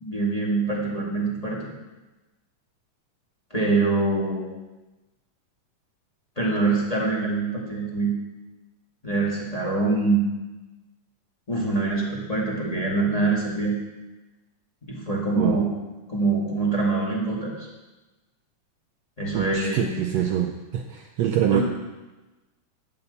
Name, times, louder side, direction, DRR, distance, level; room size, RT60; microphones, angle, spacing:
voice 1, 0.0-1.7 3.5-4.5 6.3-8.1 9.0-10.2 11.5-13.7 14.8-15.7 16.1-17.7 19.2-19.9 21.5-21.6, right 3 dB, 15° left, -4 dB, 1.4 m, -24 dB
voice 2, 19.3-21.6, right 10 dB, 80° right, 2 dB, 1.5 m, -25 dB
9.8 x 5.6 x 8.1 m, 1.1 s
omnidirectional pair, 3.7 m